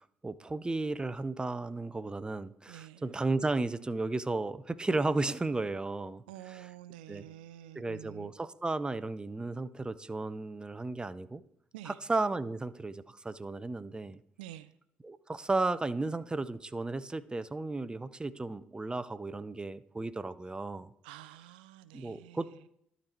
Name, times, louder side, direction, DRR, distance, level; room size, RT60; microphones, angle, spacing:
voice 1, 0.0-6.2 7.1-7.2 7.8-11.4 11.9-14.2 15.0-20.9 21.9-22.5, right 3 dB, 15° right, 15 dB, 0.5 m, -34 dB
voice 2, 2.7-3.1 6.3-8.3 11.7-12.0 14.4-14.8 21.0-22.7, right 13 dB, 90° right, 14 dB, 0.3 m, -49 dB
12.0 x 4.0 x 4.4 m, 0.71 s
hypercardioid pair, 55°, 5 cm